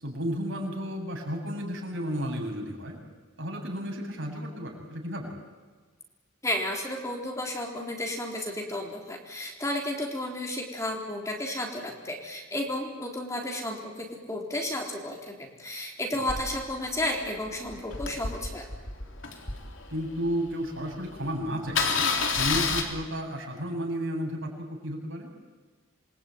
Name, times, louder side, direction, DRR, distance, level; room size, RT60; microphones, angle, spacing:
voice 1, 0.0-3.0 3.4-5.3 16.1-16.3 19.9-25.3, equal, 65° right, 0 dB, 7.3 m, -33 dB
voice 2, 6.4-18.7, left 1 dB, 15° left, 1 dB, 3.6 m, -32 dB
Engine starting, 16.3-20.5 20.9-21.0 21.2-21.4 21.7-22.8, left 5 dB, 65° left, 3.7 m, -30 dB
27.5 x 22.5 x 9.2 m, 1.3 s
head